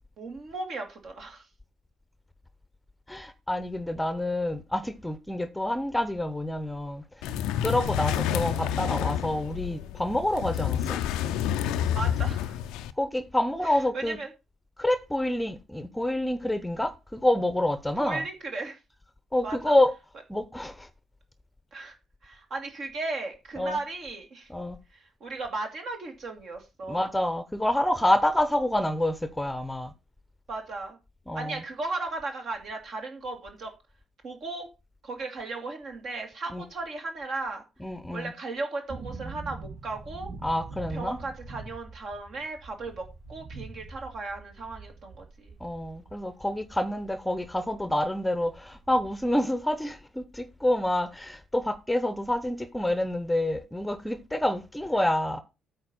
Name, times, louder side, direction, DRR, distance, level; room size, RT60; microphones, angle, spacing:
voice 1, 0.2-1.5 11.9-12.6 13.6-14.3 18.0-18.8 19.4-19.7 21.7-22.0 22.2-24.5 24.9-27.1 30.5-31.0 31.3-33.7 34.2-34.7 35.0-37.6 38.1-40.3 40.9-45.5, right 3 dB, 50° right, 2.1 m, -36 dB
voice 2, 3.1-7.3 7.6-11.0 13.0-14.2 14.8-18.2 19.3-19.9 20.3-20.9 23.6-23.8 24.5-24.8 26.9-29.9 31.3-31.6 36.5-36.6 37.8-38.3 40.4-41.2 45.6-55.4, left 1 dB, 5° left, 0.9 m, -27 dB
rolling chair, 7.2-12.9, left 10 dB, 65° left, 0.5 m, -29 dB
sound 1, 38.9-47.7 48.0-48.1 48.3-49.4 49.6-49.7, right 3 dB, 70° right, 2.7 m, -44 dB
8.8 x 4.2 x 6.9 m
figure-of-eight pair, 45°, 0 cm